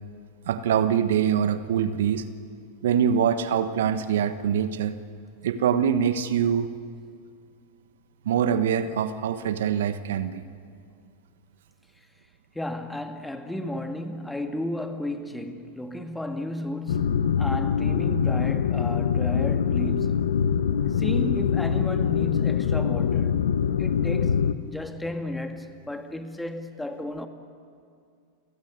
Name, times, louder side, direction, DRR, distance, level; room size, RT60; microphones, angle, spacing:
voice 1, 0.4-2.3 2.8-5.0 5.4-6.7 8.2-10.4, right 8 dB, 70° right, 1.2 m, -24 dB
voice 2, 12.5-20.4 20.9-23.5 23.8-27.3, left 1 dB, 5° left, 2.1 m, -33 dB
sound 1, 16.9-24.5, left 7 dB, 75° left, 0.9 m, -24 dB
29.5 x 16.0 x 9.6 m
hypercardioid pair, 95°, 0 cm